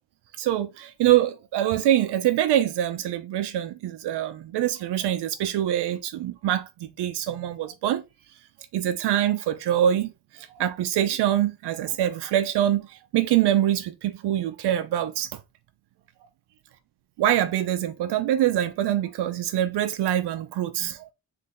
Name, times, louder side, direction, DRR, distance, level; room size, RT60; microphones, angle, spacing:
voice 1, 0.4-8.0 8.7-15.4 17.2-21.1, right 11 dB, 90° right, 0.6 m, -24 dB
3.7 x 3.2 x 3.7 m
wide cardioid pair, 150°, 39 cm